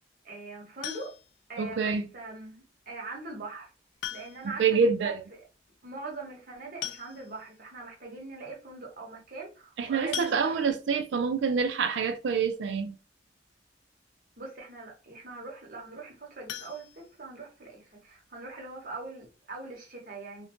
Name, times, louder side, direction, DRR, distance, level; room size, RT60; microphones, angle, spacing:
voice 1, 0.2-1.1 1.5-3.7 4.1-5.4 5.8-10.7 14.4-20.5, right 3 dB, 50° right, 0.9 m, -42 dB
sound 1, 0.8-1.5 2.9-3.0 4.0-4.6 4.9-5.0 5.3-5.4 6.4-6.5 6.8-7.5 8.1-8.2 8.5-8.7 10.1-11.0 16.4-17.6 18.0-18.1 18.5-18.6 19.0-19.1, left 9 dB, 70° left, 0.3 m, -40 dB
voice 2, 1.6-2.0 4.6-5.2 9.8-13.0, right 5 dB, 75° right, 0.4 m, -26 dB
2.6 x 2.1 x 2.9 m
head